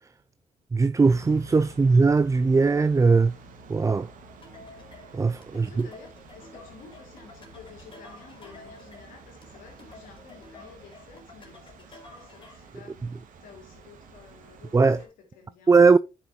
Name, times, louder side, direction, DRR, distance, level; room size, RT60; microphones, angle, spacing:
voice 1, 0.7-3.3 3.7-4.1 5.1-5.9 14.7-15.0 15.7-16.0, right 4 dB, 20° right, 0.5 m, -19 dB
sound 1, 1.0-15.1, right 3 dB, 70° right, 2.3 m, -50 dB
sound 2, 4.4-12.8, left 3 dB, 35° left, 3.9 m, -50 dB
voice 2, 5.5-13.0 13.4-15.8, left 6 dB, 75° left, 2.9 m, -51 dB
11.0 x 5.9 x 3.1 m
hypercardioid pair, 50°, 14 cm